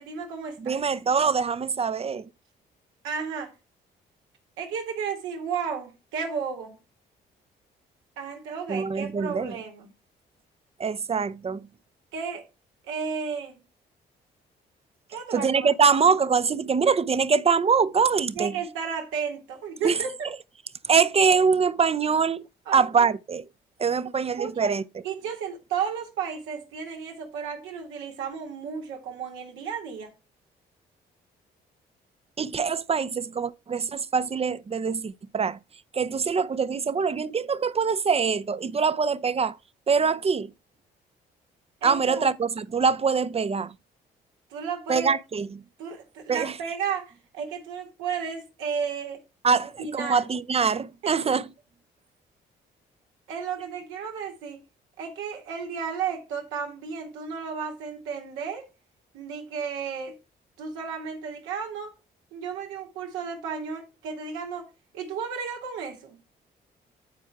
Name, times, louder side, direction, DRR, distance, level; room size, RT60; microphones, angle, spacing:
voice 1, 0.0-0.8 3.0-3.5 4.6-6.8 8.2-9.9 12.1-12.5 12.8-13.6 15.1-15.7 18.4-20.1 22.7-23.1 24.4-24.7 25.0-30.1 41.8-42.3 44.5-45.1 45.8-49.2 49.8-50.3 51.0-51.1 53.3-54.6 55.0-58.7 59.1-60.1 60.6-61.9 62.3-64.7 64.9-66.2, right 6 dB, 90° right, 2.0 m, -33 dB
voice 2, 0.6-2.3 8.7-9.6 10.8-11.7 15.3-18.6 19.8-20.0 20.8-22.5 22.7-23.4 23.8-24.8 32.4-35.6 35.9-39.6 39.9-40.5 41.8-43.7 44.9-45.5 46.3-46.5 49.4-51.5, right 5 dB, 30° right, 0.6 m, -24 dB
9.5 x 4.5 x 4.6 m
supercardioid pair, 60°, 20 cm